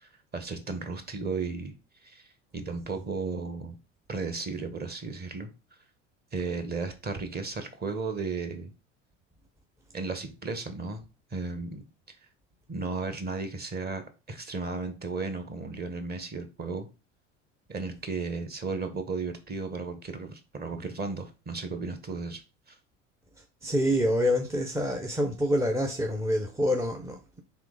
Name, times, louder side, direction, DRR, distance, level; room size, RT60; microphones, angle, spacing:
voice 1, 0.0-1.7 2.0-2.3 2.5-3.8 4.1-5.5 6.3-8.7 9.9-11.0 11.3-11.8 12.7-16.9 17.7-22.4 22.7-22.8, right 4 dB, 25° right, 1.0 m, -34 dB
voice 2, 23.6-27.4, equal, 10° right, 0.5 m, -27 dB
3.7 x 2.9 x 3.8 m
hypercardioid pair, 75°, 37 cm